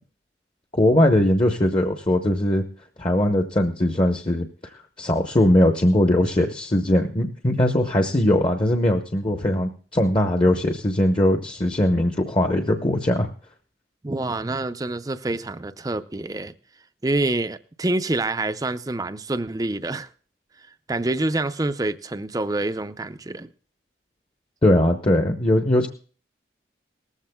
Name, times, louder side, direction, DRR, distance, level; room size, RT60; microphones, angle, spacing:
voice 1, 0.7-2.6 3.0-4.5 5.0-13.3 24.6-25.9, left 1 dB, 25° left, 0.8 m, -20 dB
voice 2, 14.0-16.5 17.0-20.1 20.9-23.5, right 2 dB, 20° right, 0.5 m, -26 dB
19.0 x 14.5 x 2.2 m
head